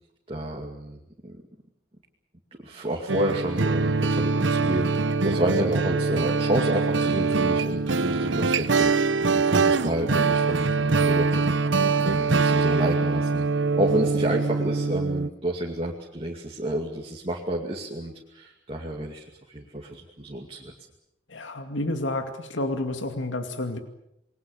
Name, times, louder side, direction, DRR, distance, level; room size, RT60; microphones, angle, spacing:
voice 1, 0.3-1.3 2.6-8.9 9.3-13.4 13.7-20.7, right 1 dB, 30° right, -1 dB, 2.4 m, -30 dB
sound 1, 3.1-15.3, right 4 dB, 80° right, 0.9 m, -23 dB
voice 2, 21.3-23.8, left 1 dB, 85° left, 6 dB, 2.4 m, -30 dB
28.5 x 21.5 x 7.1 m, 0.83 s
head